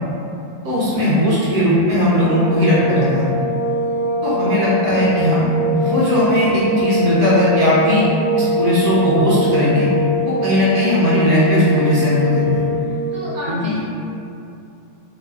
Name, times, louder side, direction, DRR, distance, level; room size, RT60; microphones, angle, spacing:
voice 1, 0.6-3.2 4.2-5.5 5.7-8.0 8.4-9.9 10.2-12.6 13.5-13.7, left 1 dB, 55° right, -10 dB, 0.8 m, -17 dB
sound 1, 2.1-13.1, equal, 40° left, 0.4 m, -22 dB
voice 2, 13.1-13.8, equal, 10° right, -14 dB, 0.7 m, -29 dB
3.9 x 2.7 x 2.3 m, 2.6 s
omnidirectional pair, 2.0 m